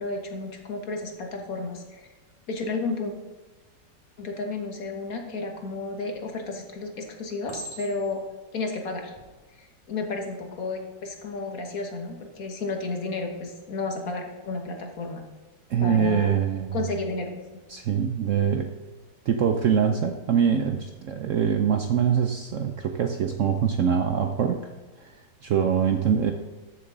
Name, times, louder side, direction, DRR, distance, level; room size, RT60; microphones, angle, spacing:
voice 1, 0.0-2.1 2.5-3.1 4.2-8.2 8.5-9.1 9.6-15.2 15.8-16.4 16.7-17.6 26.2-26.3, left 3 dB, 55° left, 3 dB, 1.7 m, -32 dB
Chink clink, 7.5-8.3 9.0-9.3, equal, 20° left, 1.9 m, -41 dB
voice 2, 15.7-16.8 17.7-18.7 19.3-24.6 25.0-25.2 25.4-26.3, right 7 dB, 65° right, 5 dB, 0.8 m, -24 dB
13.5 x 7.0 x 3.9 m, 1.3 s
omnidirectional pair, 1.8 m